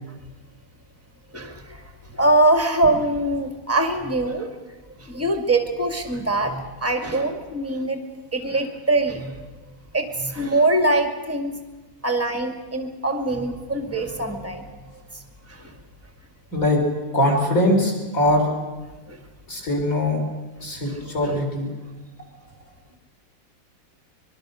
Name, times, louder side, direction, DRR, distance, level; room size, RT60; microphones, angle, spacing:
voice 1, 1.3-4.5 5.0-8.0 8.3-9.4 9.7-11.6 12.0-15.2 15.5-15.7 19.1-19.2 20.7-21.3, right 2 dB, 5° right, 5 dB, 2.0 m, -23 dB
voice 2, 17.1-18.5 19.5-20.2 20.6-21.7, left 1 dB, 35° left, -1 dB, 5.5 m, -21 dB
24.0 x 22.5 x 6.5 m, 1.2 s
omnidirectional pair, 2.4 m